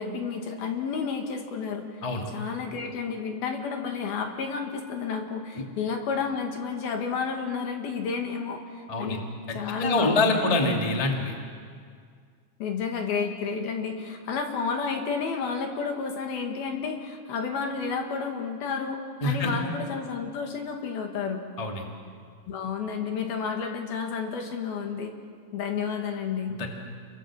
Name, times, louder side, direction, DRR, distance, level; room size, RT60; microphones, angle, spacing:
voice 1, 0.0-1.8 2.3-9.2 9.5-10.7 12.6-21.4 22.5-25.1 25.5-26.6, left 5 dB, 60° left, 3 dB, 3.4 m, -31 dB
voice 2, 8.9-9.2 9.5-11.3 19.2-19.6 21.6-21.9 26.5-26.7, left 2 dB, 20° left, 1 dB, 1.0 m, -26 dB
30.0 x 23.5 x 7.7 m, 2.1 s
omnidirectional pair, 5.5 m